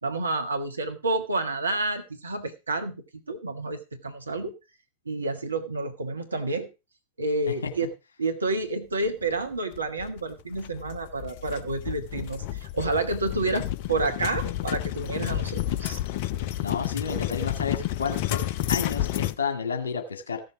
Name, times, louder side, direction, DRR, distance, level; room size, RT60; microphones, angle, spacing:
voice 1, 0.0-4.5 5.0-6.7 7.2-7.9 8.2-16.0, right 2 dB, 75° right, 6 dB, 1.4 m, -29 dB
sound 1, 9.7-19.4, left 13 dB, 50° left, 0.5 m, -30 dB
voice 2, 16.6-20.4, left 5 dB, 70° left, 5 dB, 2.0 m, -31 dB
15.0 x 6.7 x 4.9 m, 0.29 s
figure-of-eight pair, 90°, 0 cm